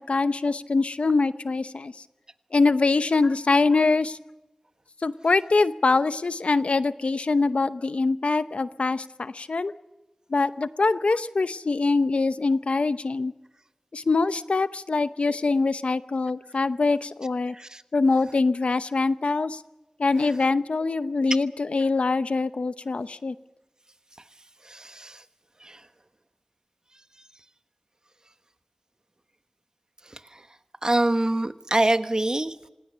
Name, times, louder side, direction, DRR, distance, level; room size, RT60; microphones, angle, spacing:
voice 1, 0.0-1.9 2.5-4.2 5.0-9.7 10.3-13.3 13.9-17.5 17.9-19.6 20.0-23.3, left 3 dB, 90° left, 13 dB, 0.8 m, -24 dB
voice 2, 24.7-25.2 25.6-25.8 30.8-32.5, right 1 dB, 40° right, 9 dB, 1.3 m, -25 dB
26.5 x 19.0 x 6.9 m, 1.0 s
wide cardioid pair, 50°, 2 cm